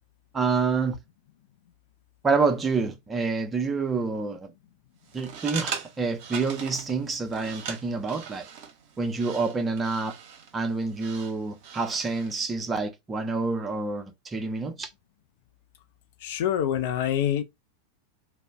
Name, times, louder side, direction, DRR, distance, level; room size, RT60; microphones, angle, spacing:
voice 1, 0.3-1.0 2.2-4.5 5.1-8.5 9.0-10.2 10.5-14.9, right 4 dB, 15° right, 0.6 m, -27 dB
sound 1, 5.1-12.4, right 7 dB, 45° right, 0.8 m, -40 dB
voice 2, 16.2-17.4, left 10 dB, 50° left, 0.4 m, -26 dB
2.3 x 2.0 x 3.3 m
figure-of-eight pair, 90°, 0 cm